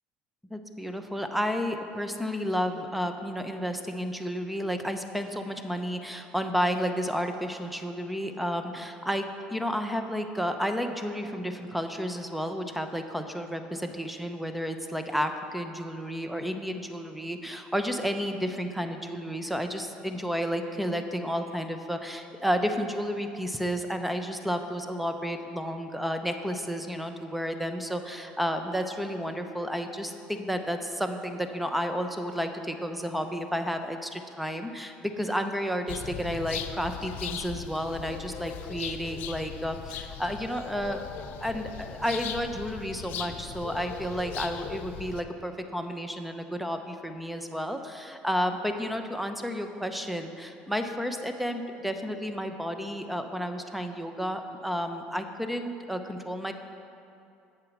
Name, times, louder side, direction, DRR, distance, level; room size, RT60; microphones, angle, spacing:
voice 1, 0.5-56.5, equal, ahead, 7 dB, 0.8 m, -31 dB
sound 1, 35.9-45.2, left 9 dB, 65° left, 0.6 m, -39 dB
8.4 x 7.1 x 6.2 m, 2.6 s
supercardioid pair, 105°, 4 cm